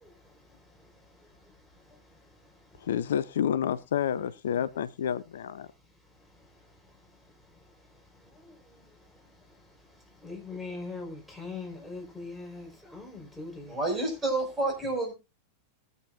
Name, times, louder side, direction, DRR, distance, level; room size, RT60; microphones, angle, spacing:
voice 1, 0.0-2.9 6.1-13.8, left 3 dB, ahead, 4.6 m, -45 dB
voice 2, 2.8-5.7, left 9 dB, 60° left, 0.5 m, -29 dB
voice 3, 13.7-15.1, right 2 dB, 20° right, 6.0 m, -29 dB
20.5 x 8.0 x 2.6 m
figure-of-eight pair, 90°, 0 cm